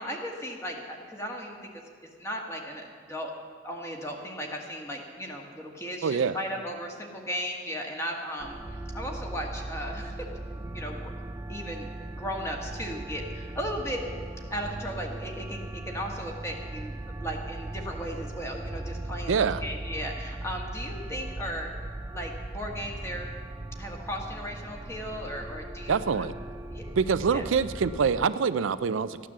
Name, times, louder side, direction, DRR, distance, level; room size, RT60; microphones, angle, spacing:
voice 1, 0.0-1.6 2.2-3.3 3.6-10.3 10.5-11.1 11.5-14.0 14.5-21.7 22.1-23.3 23.8-26.3 26.7-26.8 27.3-27.4, equal, 15° left, 1 dB, 1.6 m, -36 dB
voice 2, 6.0-6.4 19.3-19.6 25.9-26.3 27.0-29.3, right 6 dB, 75° right, 13 dB, 0.4 m, -25 dB
sound 1, 8.4-28.3, right 2 dB, 15° right, 0.3 m, -38 dB
14.0 x 9.5 x 7.4 m, 2.1 s
head